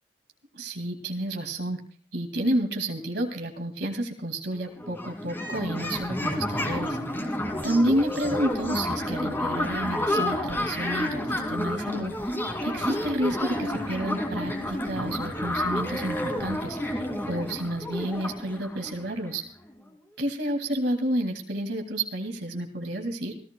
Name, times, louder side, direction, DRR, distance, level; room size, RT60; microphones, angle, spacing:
voice 1, 0.5-1.8 2.1-7.0 7.6-19.4 20.2-23.4, right 1 dB, 80° right, 5 dB, 2.2 m, -30 dB
sound 1, 4.5-4.6 4.8-19.4, left 1 dB, 15° left, 2.4 m, -30 dB
28.0 x 15.0 x 2.2 m, 0.43 s
head